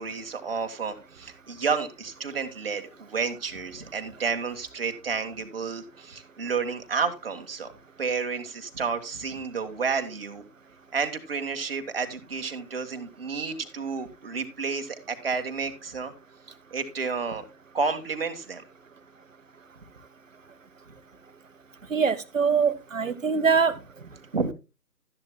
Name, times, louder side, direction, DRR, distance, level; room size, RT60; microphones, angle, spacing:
voice 1, 0.0-7.7 8.0-10.4 10.9-16.1 16.7-17.4 17.7-18.6 24.3-24.5, right 5 dB, 35° right, 6 dB, 1.5 m, -31 dB
voice 2, 21.9-23.7, right 5 dB, 50° right, 13 dB, 1.2 m, -23 dB
13.0 x 10.5 x 2.2 m, 0.28 s
figure-of-eight pair, 155°, 48 cm